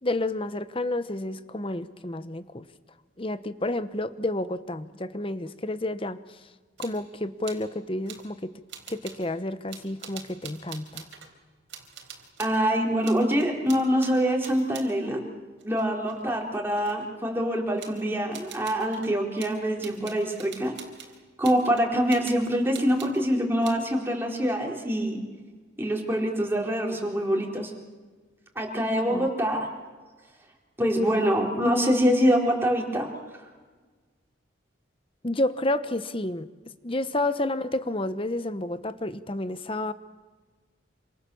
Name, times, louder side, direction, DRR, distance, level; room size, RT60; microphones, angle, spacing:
voice 1, 0.0-2.6 3.2-6.2 6.8-8.5 8.9-11.1 29.1-29.3 35.2-36.5 36.8-39.9, left 1 dB, 25° left, 12 dB, 1.0 m, -30 dB
sound 1, 6.8-7.1 7.4-7.7 8.1-8.3 8.7-9.3 9.7-11.3 11.7-12.6 13.0-15.0 15.6-17.0 17.8-18.0 18.3-23.2 23.6-23.9, right 8 dB, 75° right, 4.1 m, -45 dB
voice 2, 12.4-15.2 15.6-20.7 21.4-25.2 25.8-27.7 28.6-29.7 30.8-33.1, equal, 10° right, -1 dB, 4.0 m, -25 dB
27.5 x 26.5 x 7.1 m, 1.4 s
head